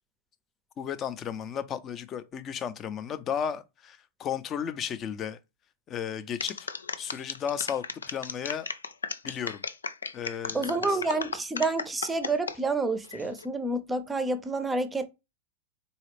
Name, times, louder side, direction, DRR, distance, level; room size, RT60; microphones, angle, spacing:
voice 1, 0.8-5.4 5.9-6.7 7.0-8.7 9.2-9.6 10.1-11.0, left 8 dB, 35° left, 0.5 m, -34 dB
sound 1, 6.4-12.6 13.0-13.5, left 5 dB, 90° left, 0.4 m, -35 dB
voice 2, 10.5-15.1, right 3 dB, 15° right, 0.6 m, -29 dB
4.0 x 2.4 x 3.2 m
hypercardioid pair, 100°, 0 cm